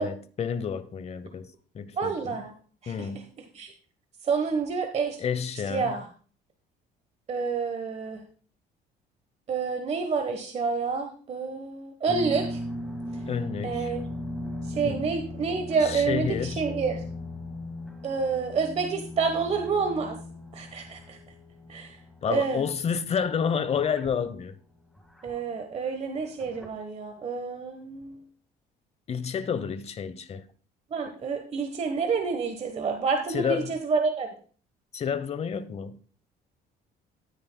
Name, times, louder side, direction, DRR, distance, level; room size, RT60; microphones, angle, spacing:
voice 1, 0.0-2.4 2.9-3.2 5.2-5.9 13.3-13.9 14.8-15.0 15.8-16.6 22.2-24.5 29.1-30.4 33.3-33.8 34.9-36.0, left 7 dB, 40° left, 0.9 m, -30 dB
voice 2, 2.0-2.5 2.8-3.1 3.5-3.7 4.2-5.2 5.7-6.1 7.3-8.2 9.5-12.6 13.6-14.0 14.6-17.0 18.0-20.1 20.5-21.2 21.7-22.0 22.3-22.6 25.2-28.2 30.9-34.3, right 5 dB, 40° right, 1.2 m, -28 dB
sound 1, 12.1-25.5 26.2-26.7, left 1 dB, ahead, 1.8 m, -38 dB
13.0 x 9.6 x 2.2 m
cardioid pair, 110°, 17 cm